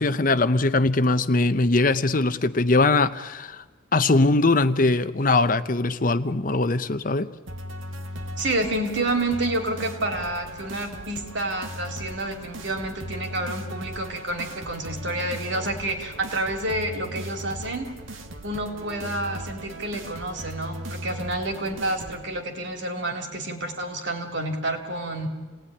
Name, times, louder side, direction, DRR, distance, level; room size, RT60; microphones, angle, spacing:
voice 1, 0.0-3.6 3.9-7.3, left 2 dB, 40° left, 11 dB, 0.8 m, -21 dB
sound 1, 7.5-22.2, equal, 80° right, 2.1 m, -38 dB
voice 2, 8.4-17.9 18.4-25.3, right 1 dB, 65° right, 4 dB, 3.4 m, -29 dB
28.5 x 19.0 x 9.9 m, 1.3 s
head